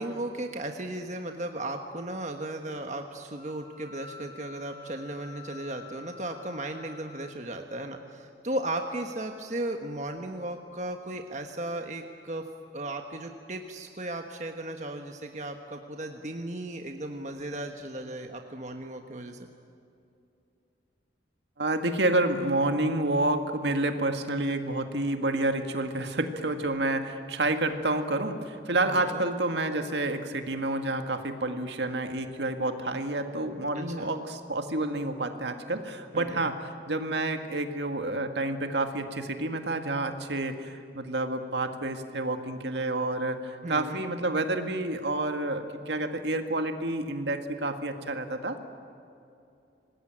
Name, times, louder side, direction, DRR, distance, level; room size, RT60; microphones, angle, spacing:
voice 1, 0.0-12.5 12.7-19.5 28.9-29.2 33.7-34.1 36.1-36.5 43.6-44.0, right 1 dB, 40° right, 4 dB, 1.4 m, -36 dB
Wind instrument woodwind instrument, 3.3-7.4, left 5 dB, 30° left, 2.6 m, -49 dB
voice 2, 21.6-36.6 36.9-48.6, right 2 dB, 80° right, 6 dB, 1.9 m, -29 dB
26.0 x 20.0 x 9.0 m, 2.7 s
head